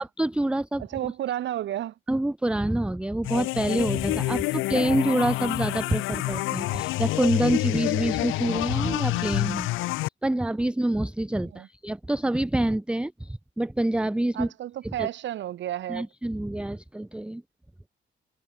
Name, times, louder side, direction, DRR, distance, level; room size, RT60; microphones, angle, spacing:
voice 1, 0.0-0.8 2.1-9.7 10.2-14.5 15.0-15.1 15.9-17.4, right 1 dB, 5° right, 0.6 m, -27 dB
voice 2, 0.8-1.9 4.4-4.5 11.5-11.7 14.3-16.1, right 12 dB, 70° right, 1.0 m, -32 dB
sound 1, 3.2-10.1, left 19 dB, 90° left, 0.4 m, -27 dB
cardioid pair, 90°, 20 cm